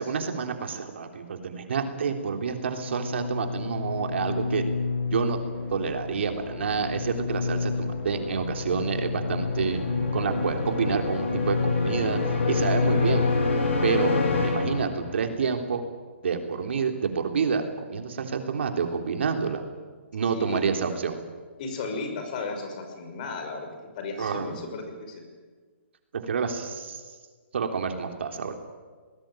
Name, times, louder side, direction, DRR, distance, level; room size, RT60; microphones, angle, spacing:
voice 1, 0.0-4.6 5.1-5.4 5.7-9.8 10.1-13.2 13.8-14.1 14.4-15.8 16.2-19.7 20.1-21.2 24.2-24.7 26.2-27.0 27.5-28.5, right 6 dB, 65° right, 5 dB, 3.5 m, -28 dB
sound 1, 2.7-15.3, left 4 dB, 80° left, 7.8 m, -28 dB
voice 2, 20.3-20.6 21.6-25.2, left 3 dB, 40° left, 5 dB, 5.8 m, -35 dB
23.0 x 20.0 x 9.1 m, 1.5 s
hypercardioid pair, 155°, 7 cm